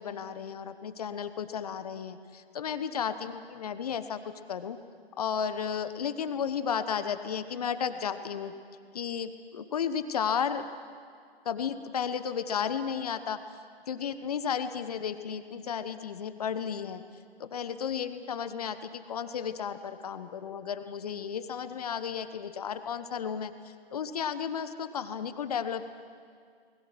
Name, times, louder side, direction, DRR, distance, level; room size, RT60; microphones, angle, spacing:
voice 1, 0.0-4.8 5.2-8.5 8.9-10.7 11.4-13.4 13.9-17.0 17.4-25.8, left 7 dB, 40° left, 11 dB, 1.1 m, -33 dB
29.5 x 21.5 x 6.2 m, 2.1 s
figure-of-eight pair, 145°, 31 cm